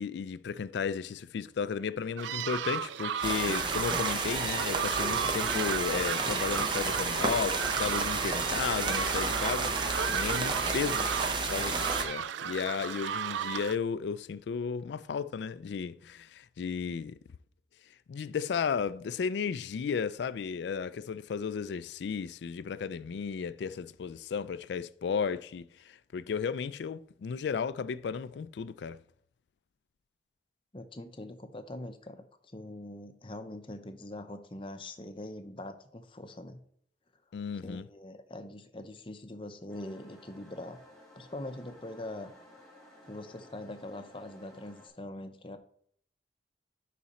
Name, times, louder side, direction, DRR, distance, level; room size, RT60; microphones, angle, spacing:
voice 1, 0.0-11.1 11.5-17.2 18.1-29.0 37.3-37.9, left 6 dB, 75° left, 0.3 m, -34 dB
sound 1, 2.2-13.7, right 8 dB, 90° right, 0.3 m, -34 dB
sound 2, 3.2-12.0, right 3 dB, 25° right, 0.7 m, -32 dB
voice 2, 30.7-32.3 32.5-36.6 37.6-40.8 41.1-42.3 43.1-45.6, left 1 dB, 30° left, 0.7 m, -43 dB
sound 3, 39.7-44.9, left 1 dB, 5° left, 2.3 m, -56 dB
10.5 x 4.2 x 4.2 m
head